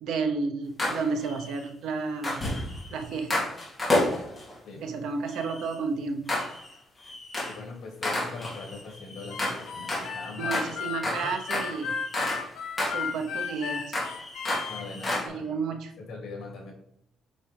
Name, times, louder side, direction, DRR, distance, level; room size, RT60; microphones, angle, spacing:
voice 1, 0.0-2.5 2.9-3.4 4.8-6.3 10.4-12.0 12.8-14.0 15.3-15.9, right 4 dB, 75° right, 6 dB, 0.9 m, -32 dB
sound 1, 0.8-1.7 2.2-4.5 5.3-5.7 6.3-6.7 7.0-7.6 8.0-12.5 12.8-15.3, left 1 dB, 10° left, 2.2 m, -31 dB
voice 2, 7.5-10.8 11.0-11.3 14.7-15.5 16.0-16.7, left 3 dB, 60° left, 0 dB, 2.6 m, -41 dB
Harmonica, 9.3-14.8, left 6 dB, 90° left, 1.2 m, -34 dB
8.1 x 4.3 x 3.4 m, 0.76 s
cardioid pair, 165°, 0 cm